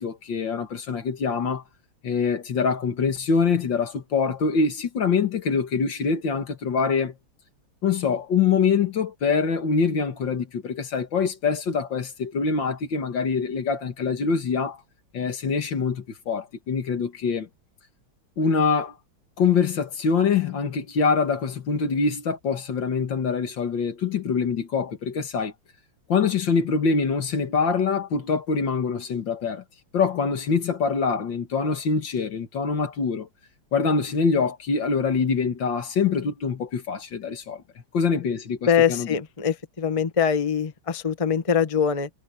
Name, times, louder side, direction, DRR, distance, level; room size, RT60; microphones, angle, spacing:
voice 1, 0.0-1.6 2.0-7.2 7.8-14.8 15.1-17.5 18.4-19.0 19.4-25.5 26.1-29.6 29.9-33.3 33.7-37.6 37.9-39.1, left 5 dB, 60° left, 2.3 m, -24 dB
voice 2, 38.7-42.1, left 7 dB, 20° left, 1.1 m, -23 dB
omnidirectional pair, 2.3 m